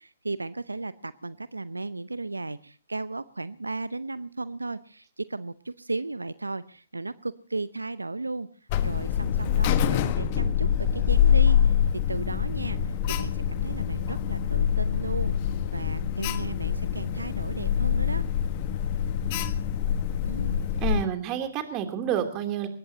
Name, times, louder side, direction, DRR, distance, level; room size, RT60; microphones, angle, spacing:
voice 1, 0.0-8.5 8.8-11.8 12.1-15.4 15.7-18.2 20.2-20.6, right 3 dB, 85° right, 16 dB, 0.7 m, -35 dB
Alarm, 8.7-21.1, left 8 dB, 35° left, 1.4 m, -25 dB
voice 2, 20.8-22.7, right 8 dB, 25° right, 7 dB, 3.0 m, -29 dB
22.5 x 19.5 x 2.8 m, 0.40 s
figure-of-eight pair, 130°, 0 cm